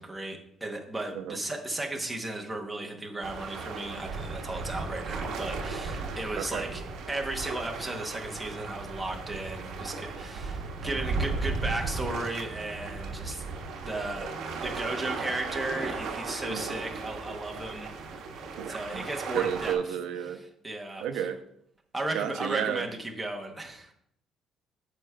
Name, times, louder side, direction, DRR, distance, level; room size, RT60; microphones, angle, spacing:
voice 1, 0.0-6.8 7.1-13.4 13.8-17.9 18.6-19.8 20.3-21.3 21.9-23.9, right 2 dB, 5° right, 0 dB, 0.8 m, -35 dB
sound 1, 3.2-19.7, right 4 dB, 55° right, 0.9 m, -36 dB
voice 2, 6.4-6.7 16.5-16.7 18.6-19.0 19.3-20.4 21.0-21.4 22.1-22.9, right 8 dB, 90° right, 8 dB, 0.5 m, -31 dB
12.0 x 4.8 x 2.2 m, 0.71 s
cardioid pair, 180°, 0 cm